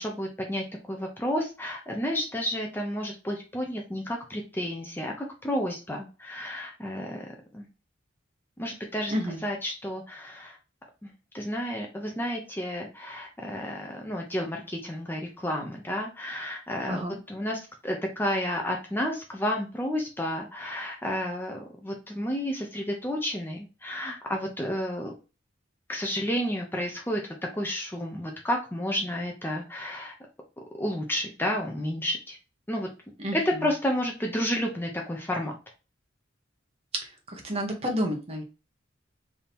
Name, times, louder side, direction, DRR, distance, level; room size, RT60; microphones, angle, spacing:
voice 1, 0.0-7.7 8.6-9.1 9.4-10.6 11.0-17.0 17.3-25.1 25.9-27.2 27.5-30.1 30.8-32.4 32.7-32.9 33.3-35.5, equal, 10° left, 1 dB, 0.5 m, -31 dB
voice 2, 33.2-33.6 36.9-38.4, equal, 30° right, 3 dB, 0.9 m, -30 dB
3.5 x 2.8 x 4.1 m, 0.32 s
head